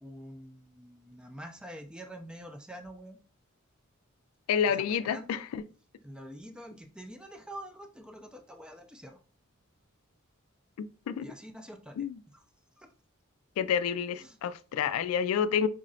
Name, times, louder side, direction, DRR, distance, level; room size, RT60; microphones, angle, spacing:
voice 1, 0.0-3.2 4.7-5.4 6.0-9.2 11.2-12.4 12.8-12.9 14.2-14.4, equal, 5° right, 0.3 m, -46 dB
voice 2, 4.5-5.6 10.8-11.3 12.0-12.2 13.6-15.7, left 7 dB, 85° left, 0.3 m, -29 dB
3.7 x 3.1 x 2.6 m
head